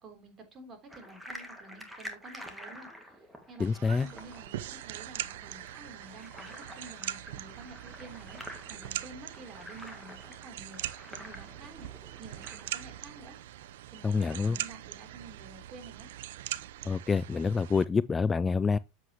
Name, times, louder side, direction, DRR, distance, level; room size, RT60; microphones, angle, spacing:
voice 1, 0.0-13.4 13.7-16.1, right 3 dB, 30° right, 3.3 m, -50 dB
sound 1, 0.9-13.2, equal, 5° right, 1.9 m, -49 dB
voice 2, 3.6-4.1 14.0-14.6 16.9-18.8, left 5 dB, 20° left, 0.3 m, -27 dB
sound 2, 3.6-17.8, right 13 dB, 80° right, 0.6 m, -42 dB
7.9 x 7.6 x 3.0 m
supercardioid pair, 120°, 0 cm